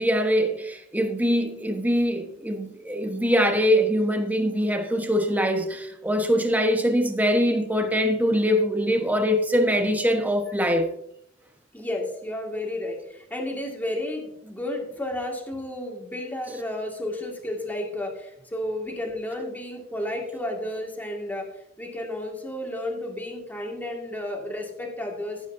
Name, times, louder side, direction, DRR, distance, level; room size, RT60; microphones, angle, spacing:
voice 1, 0.0-10.9, equal, 10° right, 1.3 m, -23 dB
voice 2, 11.7-25.4, left 1 dB, 10° left, 2.2 m, -32 dB
16.0 x 8.3 x 2.8 m
head